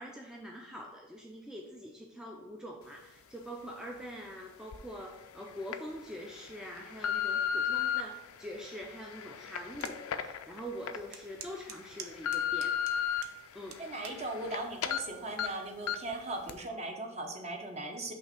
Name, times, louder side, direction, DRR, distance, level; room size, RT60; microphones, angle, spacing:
voice 1, 0.0-12.8 13.5-13.8, equal, 5° right, 0 dB, 0.4 m, -44 dB
sound 1, 4.7-4.8 5.4-5.8 6.4-8.0 8.7-11.0 11.4-11.5 11.9-13.2 13.7-14.6 14.8-15.0 15.4-15.5 15.9-16.1 16.5-16.6, left 9 dB, 85° left, 0.4 m, -33 dB
sound 2, 9.8-10.0 10.5-10.6 11.1-13.4 13.7-14.2 14.9-15.2, right 7 dB, 80° right, 0.7 m, -46 dB
voice 2, 13.8-18.1, right 2 dB, 30° right, 3 dB, 0.8 m, -38 dB
5.5 x 3.3 x 5.4 m, 0.97 s
head